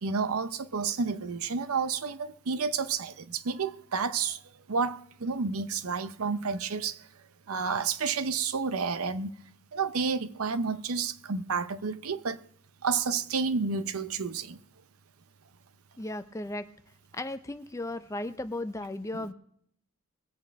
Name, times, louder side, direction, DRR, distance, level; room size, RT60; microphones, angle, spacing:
voice 1, 0.0-4.4 4.7-7.1 7.5-9.3 9.7-12.4 12.8-14.6 19.1-19.3, right 5 dB, 80° right, 0.7 m, -30 dB
voice 2, 16.0-16.6 17.1-19.3, left 2 dB, 15° left, 0.5 m, -35 dB
20.5 x 8.4 x 3.5 m
head